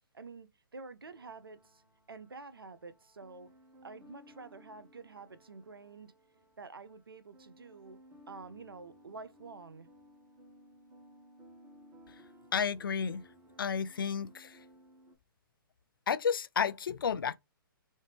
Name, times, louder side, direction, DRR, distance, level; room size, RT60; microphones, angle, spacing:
voice 1, 0.1-1.8 2.1-3.5 3.8-6.1 6.6-8.0 8.3-9.9, right 4 dB, 90° right, 0.6 m, -48 dB
sound 1, 1.0-15.1, equal, 20° right, 1.7 m, -59 dB
voice 2, 12.5-13.2 13.6-14.6 16.1-17.4, left 7 dB, 75° left, 0.4 m, -32 dB
3.6 x 3.2 x 3.3 m
figure-of-eight pair, 125°, 12 cm